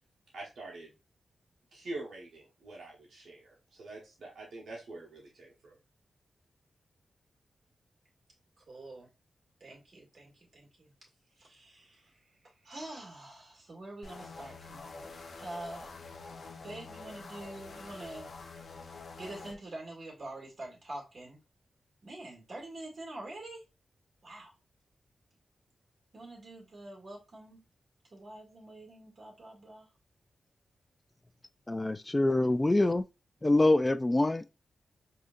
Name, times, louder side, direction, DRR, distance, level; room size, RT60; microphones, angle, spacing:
voice 1, 0.3-0.9 1.7-5.8, right 2 dB, 75° right, 1.1 m, -45 dB
voice 2, 8.7-9.1 9.6-10.9 11.4-12.1 12.4-15.1 15.4-15.9 16.6-18.3 19.2-21.4 22.0-23.6 24.2-24.5 26.1-27.6 28.1-29.9, right 2 dB, 55° right, 2.1 m, -46 dB
sound 1, 14.0-19.6, left 4 dB, 65° left, 0.7 m, -46 dB
voice 3, 31.7-33.0 33.4-34.5, left 2 dB, 25° left, 0.3 m, -25 dB
4.9 x 2.8 x 2.4 m
cardioid pair, 50°, 0 cm